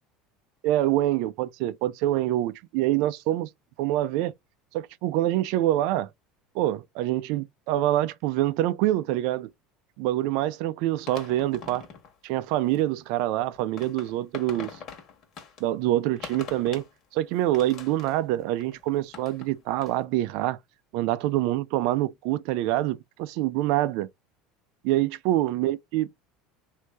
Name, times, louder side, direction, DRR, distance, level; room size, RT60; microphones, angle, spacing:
voice 1, 0.6-3.5 3.8-4.3 4.7-6.1 6.5-9.5 10.0-11.8 12.2-14.8 15.6-16.8 17.1-20.6 20.9-24.1 24.8-26.1, right 14 dB, 70° right, 0.4 m, -25 dB
sound 1, 11.0-12.1 12.5-12.8 13.4-15.6 16.0-16.9 17.3-19.5 19.8-20.0, left 6 dB, 50° left, 1.3 m, -43 dB
3.2 x 2.6 x 3.3 m
supercardioid pair, 115°, 0 cm